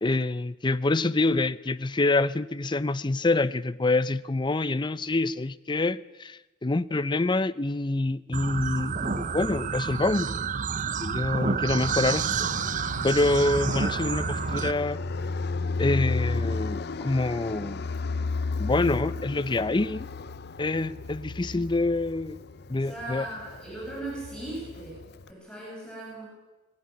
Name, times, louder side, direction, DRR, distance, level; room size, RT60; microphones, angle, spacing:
voice 1, 0.0-10.4 11.0-12.5 13.0-15.0 15.8-17.8 18.6-20.1 20.6-22.4 22.7-23.3, left 2 dB, 25° left, 0.6 m, -26 dB
sound 1, 8.3-14.7, right 5 dB, 45° right, 0.6 m, -29 dB
Fixed-wing aircraft airplane, 11.8-25.3, left 3 dB, 60° left, 0.7 m, -34 dB
voice 2, 22.8-26.3, right 1 dB, 5° left, 6.7 m, -38 dB
21.0 x 15.5 x 9.7 m
head